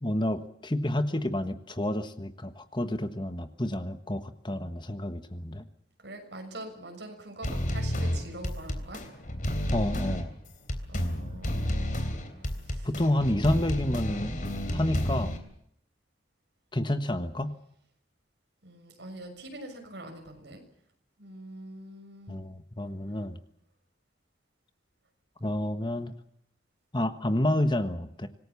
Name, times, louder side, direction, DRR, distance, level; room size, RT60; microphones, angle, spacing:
voice 1, 0.0-5.7 9.7-10.3 12.8-14.4 14.7-15.4 16.7-17.5 22.3-23.4 25.4-26.1 26.9-28.3, left 1 dB, 25° left, 10 dB, 1.3 m, -29 dB
voice 2, 6.0-9.0 10.9-12.1 12.6-12.9 18.6-20.6 21.2-22.4, right 1 dB, 70° right, 4 dB, 6.6 m, -44 dB
sound 1, 7.4-15.4, equal, 45° left, 3.5 m, -31 dB
26.5 x 19.5 x 7.2 m, 0.69 s
head